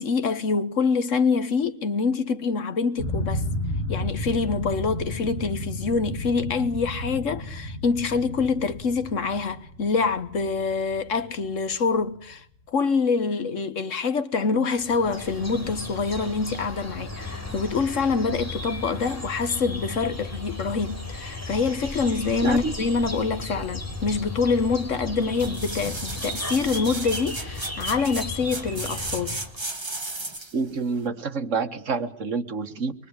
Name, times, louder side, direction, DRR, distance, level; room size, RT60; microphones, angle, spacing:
voice 1, 0.0-3.4 3.9-29.4, left 4 dB, 85° left, 1.7 m, -25 dB
sound 1, 3.0-11.8, left 1 dB, 50° left, 2.9 m, -32 dB
sound 2, 14.8-29.6, left 2 dB, 10° left, 4.3 m, -35 dB
voice 2, 22.4-22.7 30.5-32.9, right 4 dB, 85° right, 1.9 m, -28 dB
sound 3, 25.4-30.6 31.1-31.2, right 2 dB, 20° right, 1.7 m, -35 dB
24.5 x 23.0 x 8.9 m
omnidirectional pair, 1.3 m